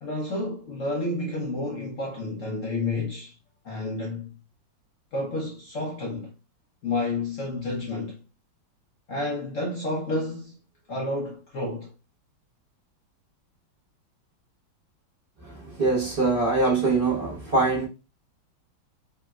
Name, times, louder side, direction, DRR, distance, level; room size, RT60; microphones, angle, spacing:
voice 1, 0.0-3.4 3.6-4.4 5.1-6.3 6.8-8.2 9.1-10.6 10.9-11.9, left 2 dB, 65° left, 0.7 m, -30 dB
voice 2, 15.8-17.9, right 3 dB, 35° right, 1.0 m, -23 dB
3.3 x 2.9 x 2.3 m
omnidirectional pair, 2.2 m